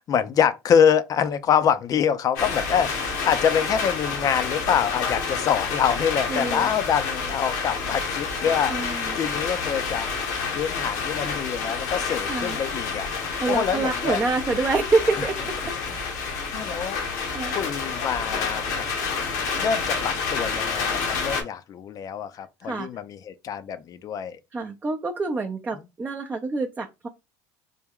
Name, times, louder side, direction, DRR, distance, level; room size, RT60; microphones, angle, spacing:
voice 1, 0.0-8.7 9.1-10.1 10.6-13.1 13.5-14.2 15.2-15.3 16.5-17.0 17.5-18.9 19.6-24.4, left 8 dB, 45° left, 0.4 m, -25 dB
sound 1, 2.4-21.4, left 5 dB, 85° left, 1.0 m, -29 dB
voice 2, 6.3-6.7 8.7-9.2 12.2-12.6 13.4-15.3 17.3-17.6 22.6-22.9 24.5-27.1, right 3 dB, 20° right, 0.5 m, -26 dB
3.4 x 2.2 x 3.5 m
supercardioid pair, 90°, 9 cm